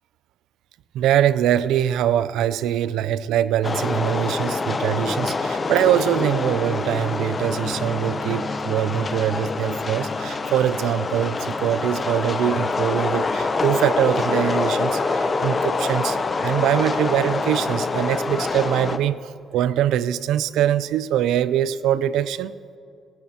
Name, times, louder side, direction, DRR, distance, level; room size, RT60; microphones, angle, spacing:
voice 1, 0.9-16.2 16.4-22.5, right 11 dB, 85° right, 16 dB, 0.4 m, -23 dB
sound 1, 3.6-19.0, left 3 dB, 35° left, 0.7 m, -25 dB
17.5 x 13.5 x 2.8 m, 2.3 s
cardioid pair, 90°, 0 cm